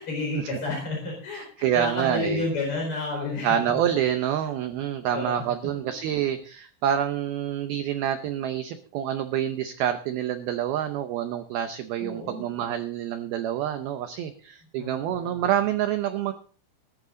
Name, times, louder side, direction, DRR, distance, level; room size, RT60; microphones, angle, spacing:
voice 1, 0.0-3.8 5.1-5.5 12.0-12.4 14.8-15.4, left 2 dB, 30° left, -2 dB, 4.9 m, -31 dB
voice 2, 1.3-2.5 3.4-16.3, right 10 dB, 90° right, 8 dB, 2.1 m, -27 dB
19.5 x 11.0 x 3.9 m, 0.42 s
omnidirectional pair, 5.6 m